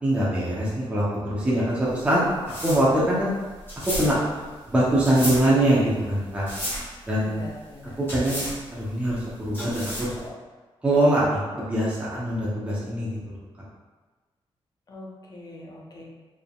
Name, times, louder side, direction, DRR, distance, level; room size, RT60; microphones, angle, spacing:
voice 1, 0.0-2.2 2.6-3.3 4.0-4.2 4.7-6.5 7.1-7.4 8.0-10.1 10.8-13.1, right 1 dB, 10° right, -8 dB, 0.8 m, -23 dB
sound 1, 1.9-10.3, equal, 20° left, 1.5 m, -34 dB
voice 2, 7.2-8.0 14.9-16.0, left 1 dB, 40° left, -2 dB, 0.7 m, -42 dB
4.4 x 3.6 x 2.4 m, 1.3 s
wide cardioid pair, 155°, 10 cm